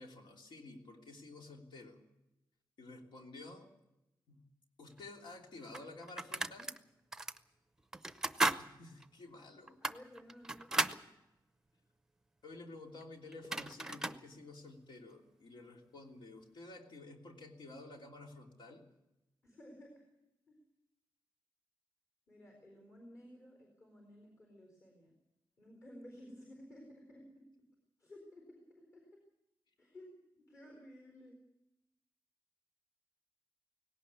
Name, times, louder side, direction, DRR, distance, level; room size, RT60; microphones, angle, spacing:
voice 1, 0.0-2.0 2.8-3.7 4.3-4.4 4.8-6.7 8.6-9.8 12.4-18.8, left 2 dB, 80° left, 2 dB, 3.0 m, -52 dB
sound 1, 5.0-5.1 5.7-6.8 7.1-7.4 7.9-8.6 9.0-9.1 9.7-11.0 13.0-13.1 13.3-14.2, right 2 dB, 5° right, 0.6 m, -35 dB
voice 2, 9.8-11.1 19.4-20.0 20.5-20.6 22.3-25.1 25.6-27.5 28.0-29.1 29.8-31.4, equal, 40° left, 2 dB, 4.3 m, -55 dB
18.5 x 17.5 x 8.3 m, 0.94 s
wide cardioid pair, 175°, 8 cm